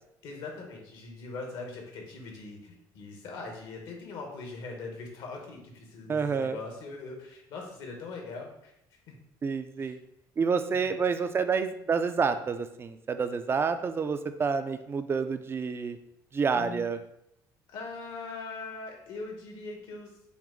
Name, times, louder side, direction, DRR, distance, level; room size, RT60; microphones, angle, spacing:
voice 1, 0.2-8.7 9.1-9.2 9.8-9.9 10.7-10.9 16.5-16.8 17.7-20.1, left 3 dB, 75° left, 1 dB, 1.2 m, -41 dB
voice 2, 6.1-6.6 9.4-10.0 10.4-16.0 16.3-17.0, right 5 dB, 30° right, 9 dB, 0.4 m, -28 dB
5.9 x 2.0 x 3.8 m, 0.79 s
cardioid pair, 95°, 8 cm